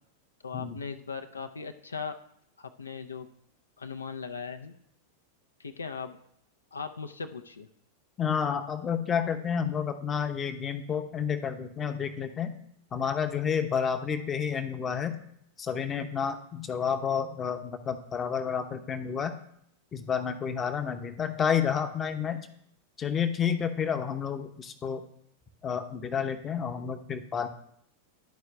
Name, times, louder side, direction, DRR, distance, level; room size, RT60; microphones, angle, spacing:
voice 1, 0.4-2.1 2.6-3.3 3.8-4.7 5.6-6.2 6.7-7.7, left 5 dB, 75° left, 8 dB, 0.5 m, -38 dB
voice 2, 8.2-12.5 12.9-15.2 15.6-19.3 19.9-22.5 23.0-25.0 25.6-27.5, left 7 dB, 25° left, 8 dB, 0.7 m, -30 dB
11.5 x 4.7 x 3.3 m, 0.69 s
figure-of-eight pair, 90°, 0 cm